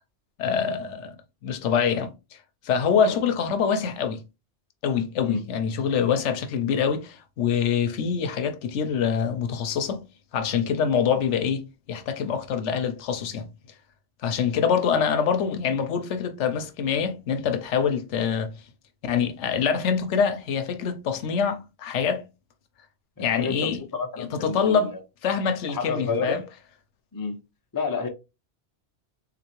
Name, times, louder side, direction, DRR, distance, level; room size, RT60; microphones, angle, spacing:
voice 1, 0.4-1.2 1.4-2.1 2.6-4.2 4.8-10.0 10.3-11.6 11.9-13.5 14.2-18.5 19.0-22.2 23.2-23.8 24.2-24.9 25.2-26.4, left 7 dB, 80° left, 1.0 m, -25 dB
voice 2, 23.2-25.0 25.7-26.5 27.1-27.4 27.7-28.1, left 4 dB, 25° left, 0.5 m, -30 dB
3.7 x 3.0 x 2.9 m
omnidirectional pair, 1.2 m